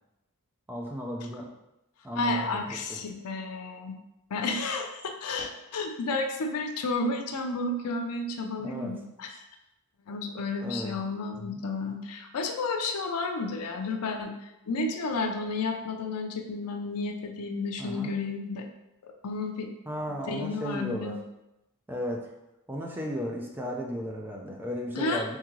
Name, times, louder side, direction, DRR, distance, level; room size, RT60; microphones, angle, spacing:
voice 1, 0.7-1.5 2.0-3.0 8.6-8.9 10.6-11.0 11.4-11.6 17.8-18.1 19.9-21.1 21.9-22.3 22.7-25.4, equal, 10° right, 0 dB, 0.5 m, -35 dB
voice 2, 2.1-4.0 4.3-9.4 10.1-18.7 19.0-19.7 20.1-21.2 24.9-25.4, left 3 dB, 85° left, 4 dB, 0.5 m, -32 dB
3.7 x 3.6 x 3.1 m, 0.92 s
head